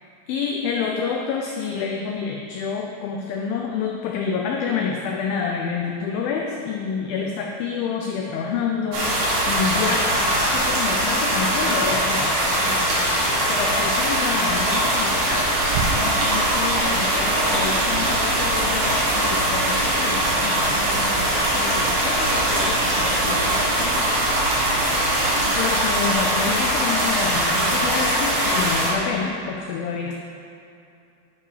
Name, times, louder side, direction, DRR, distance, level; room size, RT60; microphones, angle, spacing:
voice 1, 0.3-13.0 13.5-24.7 25.6-30.2, left 6 dB, 90° left, 0 dB, 2.1 m, -28 dB
sound 1, 8.9-28.9, right 1 dB, 60° right, 2.2 m, -21 dB
sound 2, 15.3-25.6, right 4 dB, 80° right, 2.1 m, -33 dB
10.0 x 4.8 x 4.9 m, 2.5 s
omnidirectional pair, 4.8 m